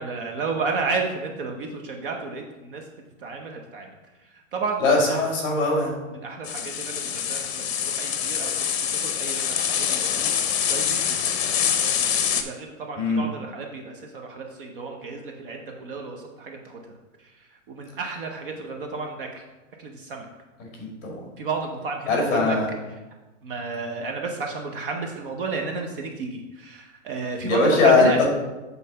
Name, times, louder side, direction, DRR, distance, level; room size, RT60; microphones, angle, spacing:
voice 1, 0.0-2.8 3.2-3.9 4.5-5.3 6.1-8.7 9.0-10.3 10.7-16.8 17.7-19.4 19.8-20.3 21.4-22.6 22.9-23.0 23.4-28.3, right 4 dB, 45° right, 2 dB, 0.8 m, -32 dB
voice 2, 4.8-5.9 13.0-13.2 20.8-21.2 22.1-22.7 27.4-28.3, left 3 dB, 20° left, -1 dB, 2.0 m, -20 dB
sound 1, 6.4-12.4, left 8 dB, 55° left, 0.8 m, -25 dB
7.7 x 4.1 x 5.5 m, 1.1 s
supercardioid pair, 175°, 39 cm